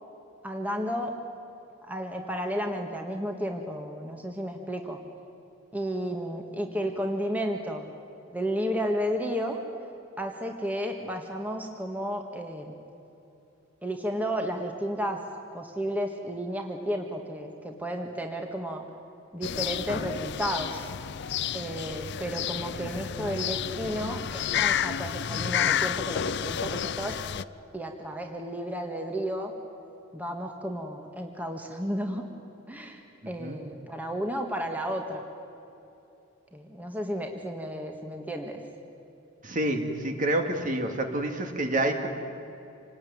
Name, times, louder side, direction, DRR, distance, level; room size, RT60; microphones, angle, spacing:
voice 1, 0.4-1.1 1.8-5.0 5.7-7.9 8.3-9.6 10.2-12.7 13.8-15.2 15.5-18.8 19.3-20.9 21.5-27.2 27.7-29.5 30.1-32.2 32.7-35.2 36.5-38.6, equal, 10° right, 3 dB, 1.7 m, -32 dB
sound 1, 19.4-27.4, left 9 dB, 60° left, 0.5 m, -30 dB
voice 2, 39.4-42.1, right 1 dB, 45° right, 5 dB, 2.3 m, -28 dB
27.0 x 19.5 x 9.6 m, 2.8 s
head